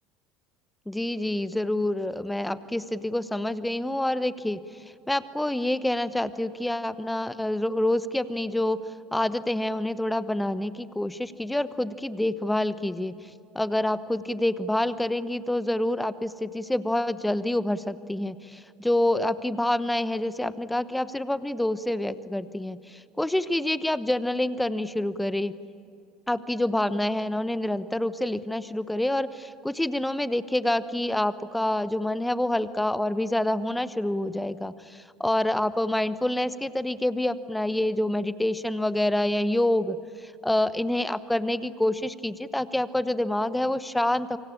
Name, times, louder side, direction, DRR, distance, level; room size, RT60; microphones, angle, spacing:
voice 1, 0.9-4.6 5.1-8.8 9.1-13.3 13.5-25.5 26.3-44.4, left 1 dB, 5° left, 15 dB, 1.0 m, -27 dB
26.5 x 25.0 x 8.7 m, 2.4 s
figure-of-eight pair, 65°, 0 cm